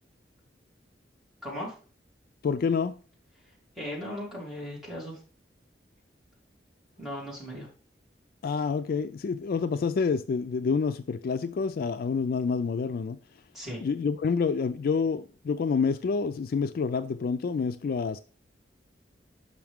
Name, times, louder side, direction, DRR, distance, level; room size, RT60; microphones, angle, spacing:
voice 1, 1.4-1.7 3.7-5.2 7.0-7.7 13.5-13.8, equal, ahead, 3.0 m, -37 dB
voice 2, 2.4-3.0 8.4-13.2 13.8-18.2, left 5 dB, 55° left, 0.3 m, -28 dB
5.9 x 5.6 x 3.5 m
head